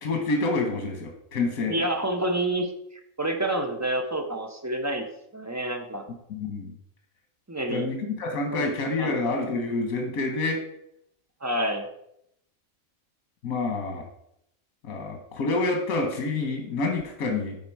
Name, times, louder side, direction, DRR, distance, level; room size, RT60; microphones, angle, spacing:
voice 1, 0.0-1.7 6.3-6.7 7.7-10.6 13.4-14.0 14.8-17.6, left 3 dB, 80° left, 3 dB, 1.5 m, -28 dB
voice 2, 1.6-5.1 5.3-6.0 7.5-7.9 8.5-8.7 9.0-9.2 11.4-11.9, right 1 dB, 20° right, 4 dB, 0.5 m, -28 dB
9.5 x 4.1 x 4.5 m, 0.77 s
omnidirectional pair, 1.4 m